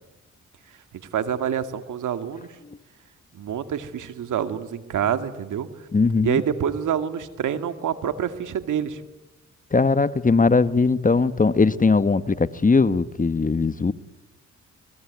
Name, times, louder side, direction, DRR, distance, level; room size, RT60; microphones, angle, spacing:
voice 1, 1.1-2.6 3.3-5.7 6.2-9.0, right 9 dB, 75° right, 9 dB, 2.2 m, -27 dB
voice 2, 5.9-6.4 9.7-13.9, left 4 dB, 25° left, 13 dB, 1.2 m, -20 dB
29.0 x 21.0 x 9.6 m, 1.0 s
cardioid pair, 70°, 31 cm